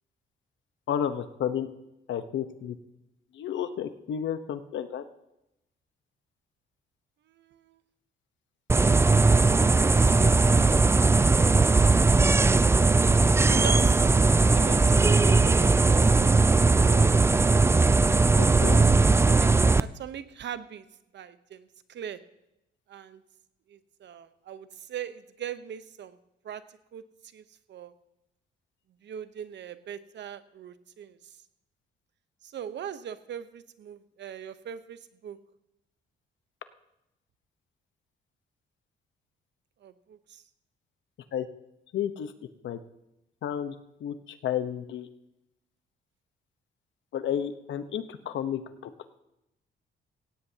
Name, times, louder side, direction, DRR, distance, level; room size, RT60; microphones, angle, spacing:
voice 1, 0.9-1.7 2.1-2.7 3.3-5.0 18.4-18.8 41.3-41.5 41.9-42.3 42.6-42.8 43.4-43.7 44.0-45.1 47.1-48.9, left 9 dB, 70° left, 10 dB, 1.1 m, -31 dB
voice 2, 7.3-7.8 9.6-11.0 12.4-13.0 13.5-14.1 14.5-17.2 18.5-18.9 19.2-19.5 19.8-20.8 21.1-22.2 22.9-23.2 23.7-26.2 26.4-26.6 26.9-27.0 27.3-27.4 27.7-27.9 29.0-31.2 32.4-35.4 39.8-40.4, right 9 dB, 65° right, 12 dB, 1.0 m, -41 dB
sound 1, 8.7-19.8, right 3 dB, 15° right, 0.4 m, -19 dB
17.5 x 16.5 x 2.9 m, 0.88 s
cardioid pair, 90°, 20 cm